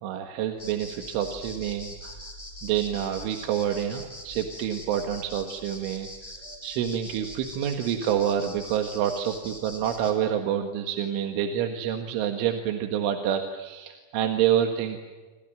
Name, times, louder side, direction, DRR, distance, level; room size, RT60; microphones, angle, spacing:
voice 1, 0.0-2.2 2.6-15.0, right 9 dB, 70° right, 5 dB, 3.9 m, -28 dB
sound 1, 0.6-10.1, left 1 dB, 10° left, 4.0 m, -43 dB
28.5 x 26.0 x 7.6 m, 1.3 s
omnidirectional pair, 6.0 m